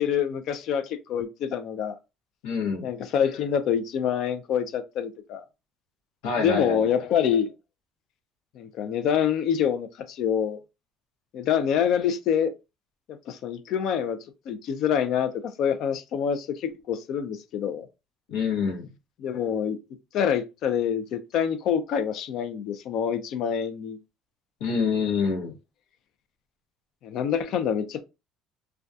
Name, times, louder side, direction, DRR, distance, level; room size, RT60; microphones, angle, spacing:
voice 1, 0.0-2.0 2.8-5.4 6.4-7.5 8.6-10.6 11.3-12.5 13.1-14.2 14.5-15.3 15.6-17.9 19.2-19.8 20.1-24.0 27.0-28.0, left 8 dB, 65° left, 0.4 m, -26 dB
voice 2, 2.4-2.9 6.2-7.0 18.3-18.9 24.6-25.5, left 5 dB, 90° left, 0.8 m, -26 dB
2.3 x 2.2 x 2.5 m
cardioid pair, 110°, 0 cm